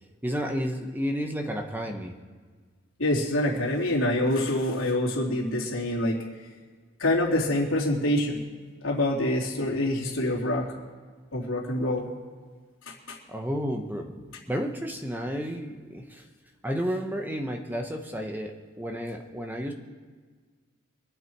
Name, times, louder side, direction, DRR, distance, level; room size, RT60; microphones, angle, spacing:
voice 1, 0.2-2.1 13.3-14.2 14.5-16.2 16.6-19.7, equal, 10° right, 3 dB, 0.9 m, -31 dB
voice 2, 3.0-6.2 7.0-8.4 8.8-10.7 11.3-12.1 12.9-13.2, left 1 dB, 80° left, -4 dB, 3.1 m, -26 dB
24.5 x 8.3 x 4.7 m, 1.5 s
head